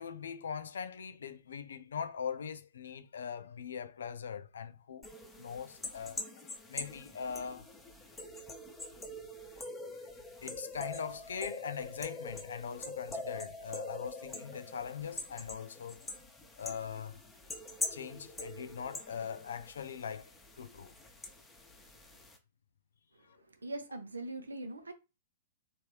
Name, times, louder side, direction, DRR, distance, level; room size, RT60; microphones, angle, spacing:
voice 1, 0.0-5.1 5.4-7.7 9.9-10.1 10.4-16.1 16.6-17.2 17.9-20.3 20.6-20.9 23.3-23.4, left 7 dB, 70° left, 0.4 m, -41 dB
sound 1, 5.0-22.4, left 2 dB, 10° left, 0.8 m, -44 dB
voice 2, 23.2-24.9, right 2 dB, 80° right, 0.7 m, -42 dB
3.2 x 2.6 x 3.3 m
figure-of-eight pair, 110°, 0 cm